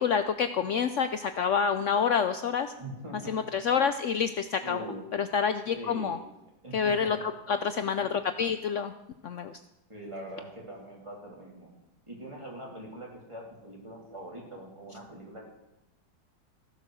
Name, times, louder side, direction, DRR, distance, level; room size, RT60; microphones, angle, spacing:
voice 1, 0.0-2.7 3.3-4.9 5.2-6.2 6.7-7.2 7.5-8.9 9.2-9.6, left 6 dB, 80° left, 9 dB, 0.6 m, -27 dB
voice 2, 2.8-3.4 4.6-5.0 5.7-6.2 6.6-7.3 9.9-11.7 12.1-15.4, right 1 dB, 15° right, -2 dB, 3.1 m, -42 dB
15.5 x 7.4 x 6.3 m, 0.94 s
omnidirectional pair, 1.9 m